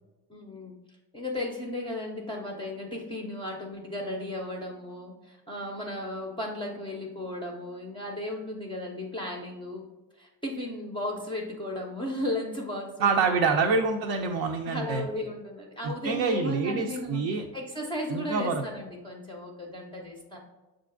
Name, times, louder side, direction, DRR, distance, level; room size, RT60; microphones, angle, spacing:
voice 1, 0.3-0.7 1.1-9.9 10.2-13.5 14.6-20.4, left 1 dB, 10° left, -1 dB, 0.5 m, -35 dB
voice 2, 13.0-15.0 15.8-17.4 18.1-18.6, right 4 dB, 50° right, 3 dB, 0.5 m, -26 dB
6.7 x 2.5 x 2.4 m, 1.1 s
hypercardioid pair, 65°, 50 cm